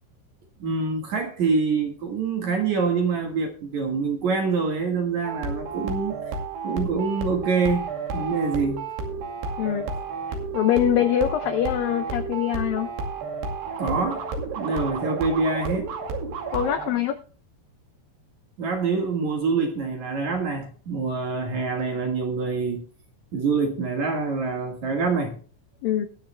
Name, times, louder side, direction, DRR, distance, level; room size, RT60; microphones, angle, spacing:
voice 1, 0.6-6.1 6.6-8.8 13.8-14.3 14.6-16.0 18.6-22.9 23.3-25.4, right 4 dB, 55° right, 2.4 m, -25 dB
sound 1, 5.2-16.9, right 4 dB, 70° right, 4.4 m, -31 dB
voice 2, 10.5-12.9 16.5-17.2 25.8-26.1, left 10 dB, 80° left, 2.1 m, -23 dB
21.0 x 9.3 x 2.2 m
omnidirectional pair, 5.1 m